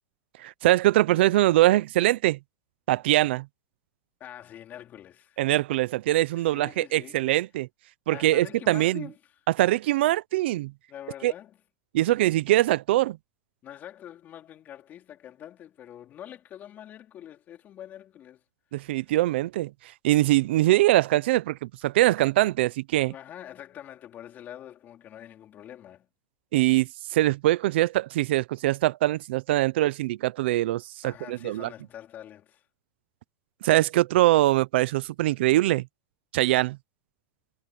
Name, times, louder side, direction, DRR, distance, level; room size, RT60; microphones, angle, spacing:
voice 1, 0.4-2.4 2.9-3.5 5.4-7.7 8.1-9.1 9.5-10.7 11.2-11.3 11.9-13.2 18.7-19.7 20.0-23.1 26.5-31.7 33.6-35.9 36.3-36.8, right 16 dB, 70° right, 0.8 m, -23 dB
voice 2, 4.2-5.4 6.4-7.2 8.1-9.2 10.9-11.6 13.6-18.4 18.8-19.0 23.1-26.1 31.0-32.6, left 11 dB, 30° left, 4.0 m, -45 dB
supercardioid pair, 145°, 6 cm